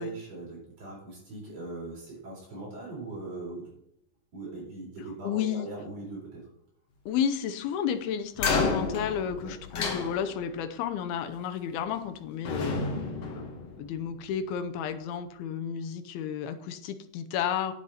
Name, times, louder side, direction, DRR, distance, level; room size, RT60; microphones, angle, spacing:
voice 1, 0.0-3.7 4.3-6.5 9.4-9.6, right 2 dB, 40° right, -5 dB, 5.1 m, -40 dB
voice 2, 5.2-5.7 7.1-12.9 13.4-13.5 13.8-17.7, left 8 dB, 75° left, 8 dB, 2.4 m, -32 dB
sound 1, 8.4-10.7 11.8-12.1 12.5-14.2, left 4 dB, 60° left, 1.7 m, -31 dB
10.0 x 8.2 x 4.3 m, 0.76 s
omnidirectional pair, 4.8 m